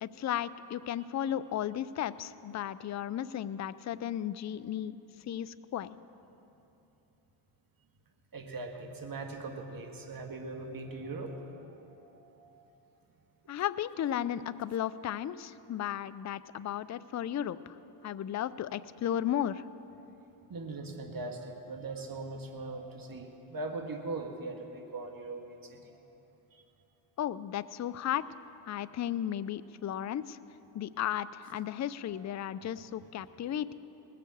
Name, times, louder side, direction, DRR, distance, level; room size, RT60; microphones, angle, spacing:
voice 1, 0.0-5.0 5.3-6.0 13.5-17.8 18.0-19.6 27.2-28.2 28.6-30.4 30.7-33.7, left 10 dB, 35° left, 15 dB, 0.5 m, -34 dB
voice 2, 8.3-12.7 20.5-26.0 26.5-26.6, right 3 dB, 45° right, 3 dB, 1.7 m, -41 dB
19.5 x 6.8 x 7.7 m, 3.0 s
supercardioid pair, 55°, 48 cm